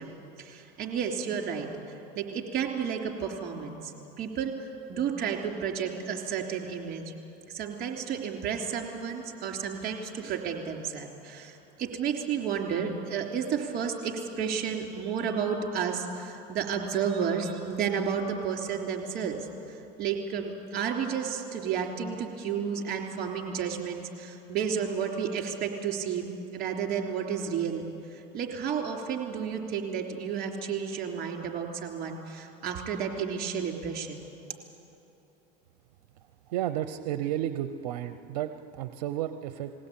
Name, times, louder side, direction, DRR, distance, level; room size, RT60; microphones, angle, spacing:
voice 1, 0.0-1.7 2.2-4.5 4.9-7.1 7.5-34.2, right 7 dB, 50° right, 2 dB, 3.6 m, -32 dB
voice 2, 36.5-39.7, right 12 dB, 85° right, 10 dB, 0.7 m, -32 dB
21.0 x 17.0 x 8.7 m, 3.0 s
supercardioid pair, 95°, 20 cm